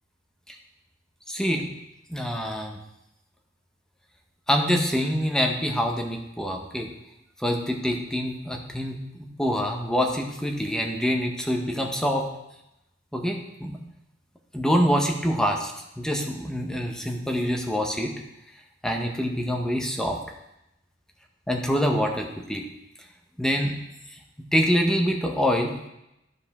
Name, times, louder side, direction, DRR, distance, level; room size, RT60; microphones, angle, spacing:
voice 1, 1.3-1.7 2.1-2.8 4.5-6.9 7.4-9.0 9.4-12.2 13.1-13.8 14.5-18.1 18.8-20.2 21.5-22.6 23.4-23.8 24.5-25.9, equal, 5° left, 1 dB, 0.9 m, -25 dB
11.0 x 4.9 x 3.6 m, 0.87 s
head